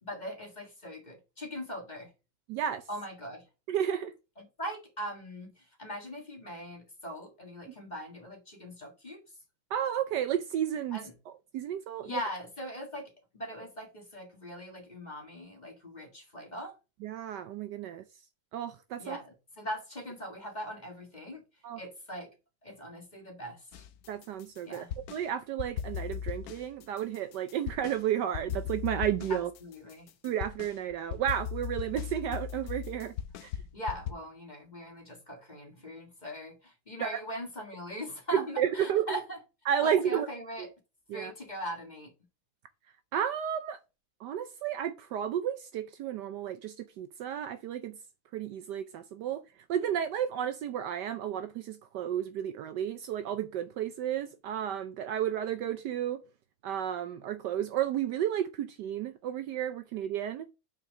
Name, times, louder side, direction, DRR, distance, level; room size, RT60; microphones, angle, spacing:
voice 1, 0.0-2.1 2.9-3.5 4.4-9.2 10.9-11.1 12.0-16.8 19.0-21.4 21.8-22.3 22.6-23.8 24.6-24.9 29.3-30.1 33.7-39.4 39.8-40.7 41.1-42.1, equal, 25° left, 1.6 m, -41 dB
voice 2, 2.5-2.8 3.7-4.1 7.7-7.8 9.7-11.0 11.5-12.3 17.0-18.0 18.5-19.2 21.6-21.8 24.1-24.8 25.1-29.5 30.2-33.1 33.4-33.5 37.0-37.2 38.3-39.0 39.7-40.3 40.6-40.7 41.1-41.3 43.1-43.8 44.2-48.0 48.3-49.4 49.7-56.2 56.6-60.4, right 10 dB, 70° right, 1.1 m, -32 dB
sound 1, 23.7-25.2 25.6-28.0 28.3-34.1, left 9 dB, 65° left, 1.0 m, -38 dB
5.8 x 4.6 x 6.1 m
omnidirectional pair, 2.1 m